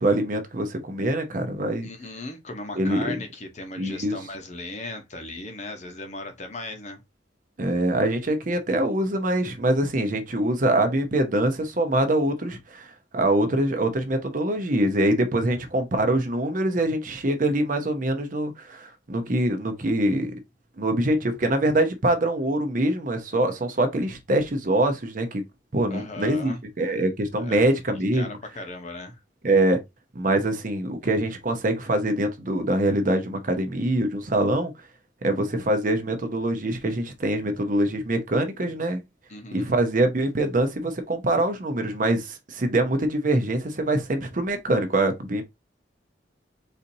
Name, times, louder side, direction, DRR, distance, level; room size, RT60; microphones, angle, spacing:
voice 1, 0.0-1.9 2.8-3.1 3.8-4.2 7.6-20.3 20.8-25.4 25.7-28.4 29.4-29.8 30.1-34.7 35.2-39.0 39.5-45.4, right 1 dB, 50° right, 0.7 m, -24 dB
voice 2, 1.8-7.0 25.9-26.6 27.4-27.7 28.1-29.2 39.3-39.8, left 2 dB, 40° left, 0.8 m, -37 dB
4.2 x 2.7 x 2.6 m
head